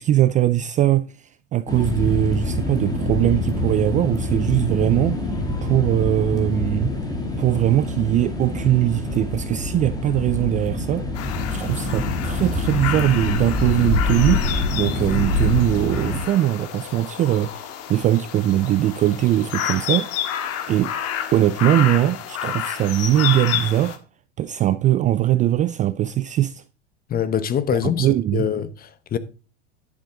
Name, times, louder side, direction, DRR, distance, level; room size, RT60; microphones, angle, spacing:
voice 1, 0.0-5.2 5.6-6.9 7.4-11.1 11.5-14.4 14.7-20.1 20.7-20.9 21.3-24.0 24.4-26.6 27.8-28.5, right 13 dB, 25° right, 0.3 m, -21 dB
sound 1, 1.7-16.2, left 2 dB, 10° left, 2.6 m, -25 dB
sound 2, 11.1-24.0, left 10 dB, 45° left, 1.7 m, -30 dB
voice 2, 27.1-29.2, left 9 dB, 25° left, 1.0 m, -24 dB
11.0 x 7.4 x 3.8 m
hypercardioid pair, 110°, 34 cm